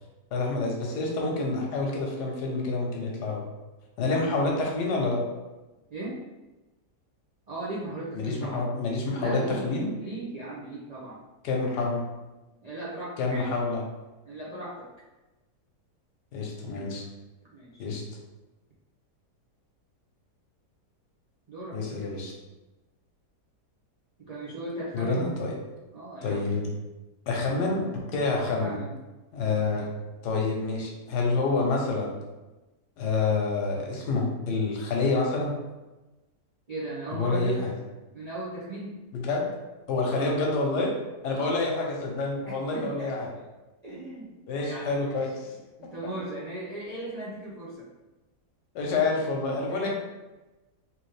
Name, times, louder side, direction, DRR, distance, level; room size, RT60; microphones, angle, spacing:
voice 1, 0.3-3.4 4.0-5.2 8.1-9.9 11.4-12.0 13.2-13.8 16.3-17.0 17.8-18.0 21.7-22.3 24.9-25.5 26.2-26.6 27.3-27.8 28.1-28.8 29.3-29.9 30.2-32.1 33.0-35.5 37.1-37.7 39.1-39.5 39.9-40.9 41.2-43.3 44.5-45.5 48.7-49.9, left 3 dB, 90° left, -1 dB, 1.4 m, -27 dB
voice 2, 4.0-4.6 5.9-6.2 7.5-8.7 9.2-11.2 12.6-13.5 14.2-14.9 17.5-17.8 21.5-21.8 24.2-25.3 25.9-26.5 28.3-29.0 29.7-29.9 36.7-37.7 38.1-39.0 40.1-40.5 41.3-41.8 42.5-43.2 43.8-45.3 45.8-47.9 49.7-49.9, right 2 dB, 80° right, -7 dB, 0.3 m, -38 dB
3.5 x 3.0 x 3.2 m, 1.1 s
omnidirectional pair, 1.7 m